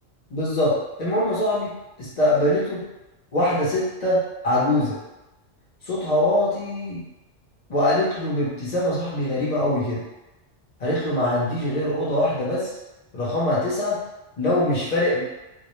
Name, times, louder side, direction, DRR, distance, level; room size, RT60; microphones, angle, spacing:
voice 1, 0.3-1.7 2.0-2.8 3.3-5.0 5.8-7.0 7.7-10.0 10.8-12.7 13.1-14.0 14.4-15.2, left 1 dB, 45° left, -7 dB, 0.6 m, -23 dB
2.2 x 2.0 x 2.9 m, 1.0 s
omnidirectional pair, 1.2 m